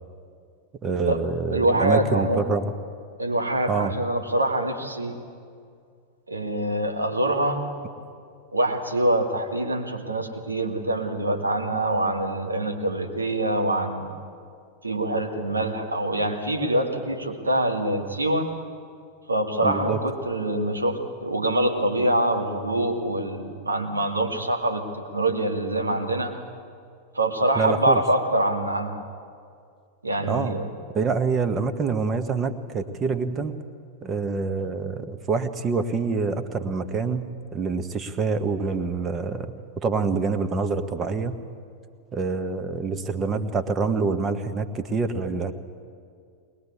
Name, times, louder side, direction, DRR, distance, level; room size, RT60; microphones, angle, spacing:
voice 1, 0.8-2.7 3.7-3.9 19.6-20.0 27.6-28.0 30.2-30.5 30.9-33.6 34.0-41.4 42.1-45.5, right 4 dB, 25° right, 9 dB, 1.4 m, -26 dB
voice 2, 1.5-2.4 3.2-5.2 6.3-7.6 8.5-14.1 14.8-18.5 19.3-26.3 27.1-29.0 30.0-30.7, right 1 dB, 80° right, 2 dB, 2.3 m, -25 dB
22.0 x 21.0 x 8.5 m, 2.3 s
figure-of-eight pair, 90°, 0 cm